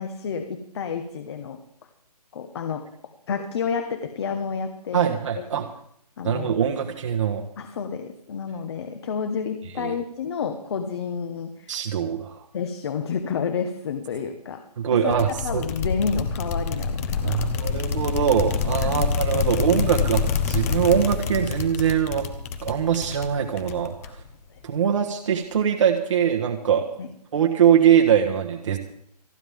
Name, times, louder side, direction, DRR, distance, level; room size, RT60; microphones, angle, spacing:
voice 1, 0.0-1.6 2.3-2.9 3.3-5.4 6.2-6.5 7.6-11.8 12.5-14.6 14.9-17.9 18.8-19.5 19.8-19.9 24.0-24.1 27.0-27.1, left 6 dB, 40° left, 7 dB, 1.3 m, -30 dB
voice 2, 4.9-5.7 6.2-7.4 9.8-9.9 11.7-12.4 14.8-15.6 17.2-22.3 22.6-24.1 24.6-26.8 27.3-28.8, right 8 dB, 45° right, 2 dB, 1.6 m, -22 dB
sound 1, 15.1-24.3, left 6 dB, 20° left, 1.1 m, -27 dB
28.0 x 9.9 x 3.6 m, 0.70 s
hypercardioid pair, 160°, 21 cm